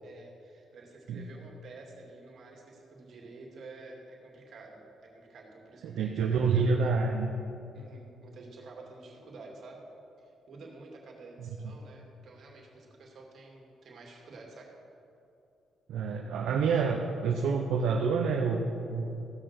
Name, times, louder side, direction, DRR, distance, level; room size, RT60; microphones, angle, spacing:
voice 1, 0.0-6.8 7.7-9.9 10.2-14.7, right 3 dB, 60° right, 0 dB, 2.6 m, -50 dB
voice 2, 5.8-7.3 15.9-19.3, right 5 dB, 80° right, 1 dB, 0.8 m, -28 dB
16.0 x 6.4 x 6.1 m, 2.8 s
cardioid pair, 90°, 0 cm